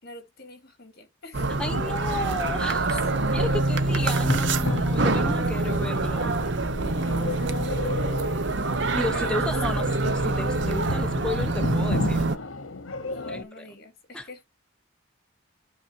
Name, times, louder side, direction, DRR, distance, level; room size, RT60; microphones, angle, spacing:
voice 1, 0.0-1.5 3.1-3.7 6.8-8.4 9.1-9.4 13.1-14.4, left 1 dB, 50° left, 2.4 m, -45 dB
sound 1, 1.3-12.4, right 2 dB, 60° right, 0.9 m, -25 dB
voice 2, 1.4-3.0 3.3-6.3 8.9-12.2 13.3-13.6 14.1-14.3, left 2 dB, 5° left, 1.1 m, -33 dB
sound 2, 1.7-13.4, left 2 dB, 80° left, 1.1 m, -34 dB
12.0 x 4.1 x 2.8 m
head